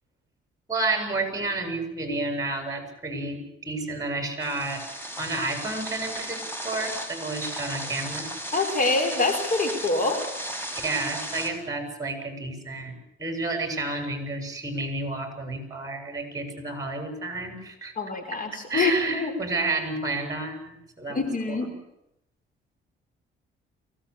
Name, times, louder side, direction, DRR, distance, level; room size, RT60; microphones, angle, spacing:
voice 1, 0.7-4.8 5.2-8.3 10.8-17.9 18.7-21.2 21.5-21.6, right 2 dB, 20° right, 5 dB, 7.3 m, -30 dB
sound 1, 4.4-11.5, right 1 dB, 10° left, 5.6 m, -35 dB
voice 2, 8.5-10.2 18.0-19.3 21.1-21.7, left 3 dB, 45° left, 6 dB, 4.5 m, -25 dB
24.0 x 18.0 x 8.5 m, 0.82 s
cardioid pair, 90°, 20 cm